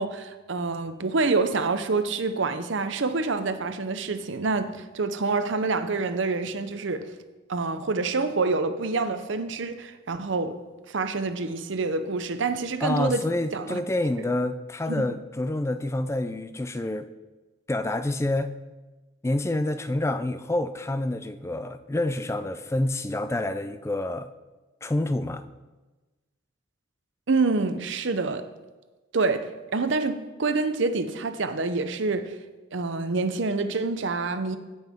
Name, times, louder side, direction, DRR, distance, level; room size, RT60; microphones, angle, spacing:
voice 1, 0.0-7.1 7.5-10.6 10.9-13.2 13.5-13.8 14.9-15.0 27.3-28.4 29.1-32.4 32.7-34.6, right 3 dB, 60° right, 10 dB, 0.7 m, -27 dB
voice 2, 12.8-17.1 17.7-18.5 19.2-24.3 24.8-25.4, left 1 dB, 15° left, 11 dB, 0.3 m, -27 dB
16.5 x 5.6 x 3.6 m, 1.2 s
head